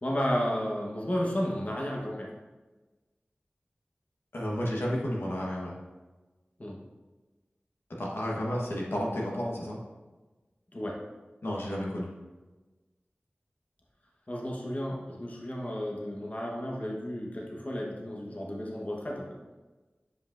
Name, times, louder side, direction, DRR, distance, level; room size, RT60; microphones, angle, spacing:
voice 1, 0.0-2.3 6.6-6.8 10.7-11.0 14.3-19.4, equal, 40° left, -2 dB, 1.1 m, -33 dB
voice 2, 4.3-5.7 7.9-9.8 11.4-12.1, equal, 85° left, -3 dB, 1.1 m, -32 dB
8.0 x 5.2 x 2.5 m, 1.2 s
wide cardioid pair, 55°, 4 cm